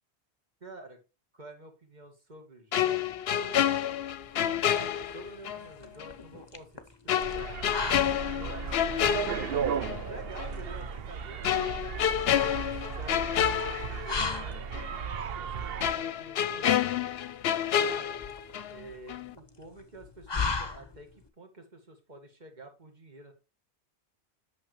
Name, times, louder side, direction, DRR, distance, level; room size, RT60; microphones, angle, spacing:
voice 1, 0.6-1.0 1.3-3.2 4.4-6.7 7.0-7.6 8.3-9.3 9.7-13.6 14.0-16.8 17.8-18.2 18.7-23.3, right 2 dB, 40° right, 4 dB, 2.1 m, -48 dB
sound 1, 2.7-5.7 6.0-6.1 7.1-10.0 10.4-10.6 11.4-14.4 14.7-14.9 15.8-18.8 19.1-19.3, left 10 dB, 70° left, 0.8 m, -29 dB
sound 2, 4.2-21.3, left 4 dB, 25° left, 0.8 m, -39 dB
sound 3, 7.2-15.9, right 6 dB, 65° right, 0.9 m, -36 dB
8.8 x 6.5 x 3.2 m, 0.29 s
omnidirectional pair, 1.1 m